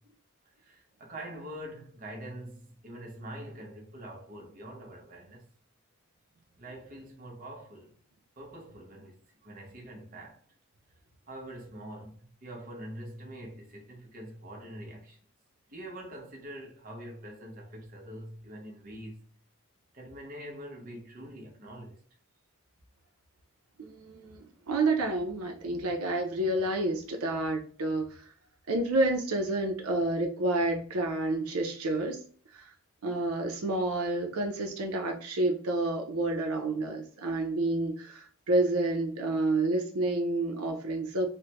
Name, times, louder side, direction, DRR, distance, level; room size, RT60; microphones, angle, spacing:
voice 1, 0.6-5.5 6.6-8.0 8.4-10.4 10.9-11.0 11.3-15.2 15.7-19.3 19.9-22.0, right 1 dB, 40° right, 0.7 m, -44 dB
voice 2, 23.8-28.2 28.7-32.2 32.5-32.7 33.0-41.3, right 2 dB, 80° right, 0.6 m, -29 dB
3.2 x 2.1 x 2.9 m
head